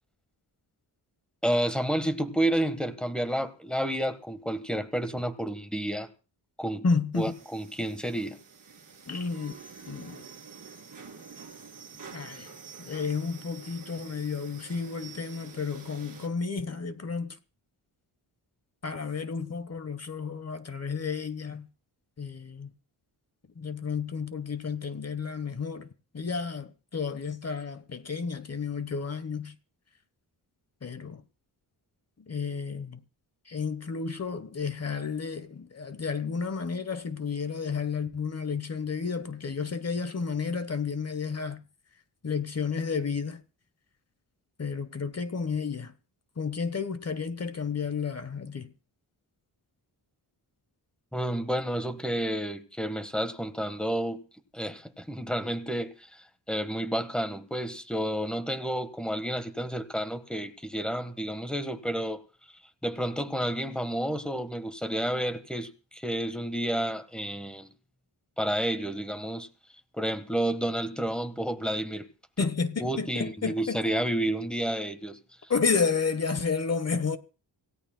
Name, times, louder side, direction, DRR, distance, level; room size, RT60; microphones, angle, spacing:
voice 1, 1.4-6.1 6.6-6.8 7.1-8.4 51.1-54.2 54.5-62.2 62.8-67.7 68.4-69.5 70.0-72.1 72.4-72.5 72.8-75.2, right 1 dB, ahead, 1.3 m, -30 dB
voice 2, 6.8-7.3 9.1-9.5 9.9-10.2 12.1-12.5 12.8-17.4 18.8-21.7 22.2-22.7 23.6-25.9 26.1-29.5 30.8-31.2 32.3-33.0 33.5-41.6 42.2-43.4 44.6-45.9 46.4-48.7 72.4-73.8 75.5-77.2, left 5 dB, 35° left, 1.1 m, -31 dB
sound 1, 7.1-16.3, right 5 dB, 45° right, 2.4 m, -48 dB
26.5 x 16.5 x 2.2 m
wide cardioid pair, 120°, 43 cm